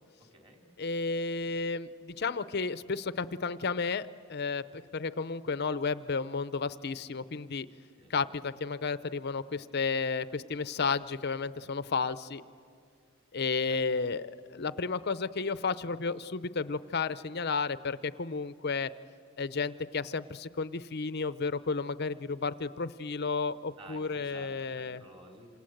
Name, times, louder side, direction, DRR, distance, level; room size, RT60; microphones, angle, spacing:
voice 1, 0.2-1.1 8.0-8.2 13.6-13.8 23.8-25.6, right 2 dB, 25° right, 2 dB, 3.5 m, -53 dB
voice 2, 0.8-7.7 8.1-12.4 13.3-18.9 19.4-25.0, left 4 dB, 50° left, 14 dB, 0.6 m, -32 dB
27.5 x 27.0 x 7.9 m, 2.2 s
head